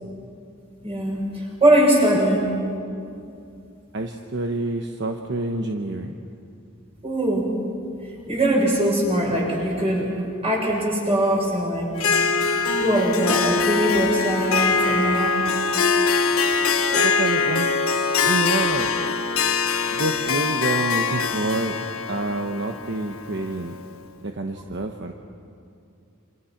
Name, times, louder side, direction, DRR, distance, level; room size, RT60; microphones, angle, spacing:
voice 1, 0.8-2.4 7.0-7.5 8.3-10.1 10.4-11.9 12.8-15.3, right 1 dB, 30° right, -3 dB, 7.1 m, -21 dB
voice 2, 3.9-6.2 16.9-17.7 18.2-18.9 19.9-21.8 22.1-23.7 24.2-25.1, right 2 dB, 55° right, 4 dB, 1.1 m, -27 dB
Harp, 12.0-23.8, left 5 dB, 90° left, 1.4 m, -23 dB
28.0 x 27.0 x 5.9 m, 2.5 s
head